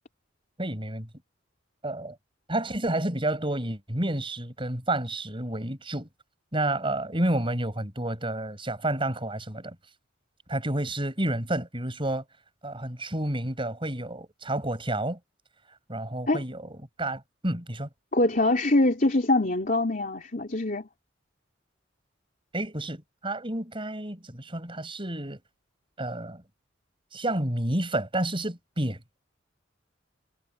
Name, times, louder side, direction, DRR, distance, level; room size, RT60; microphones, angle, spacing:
voice 1, 0.6-1.1 1.8-2.2 2.5-6.1 6.5-9.8 10.5-12.2 12.6-15.2 15.9-17.9 22.5-25.4 26.0-26.4 27.1-29.2, right 1 dB, 25° right, 6.5 m, -30 dB
voice 2, 18.1-20.8, left 2 dB, 45° left, 3.3 m, -23 dB
head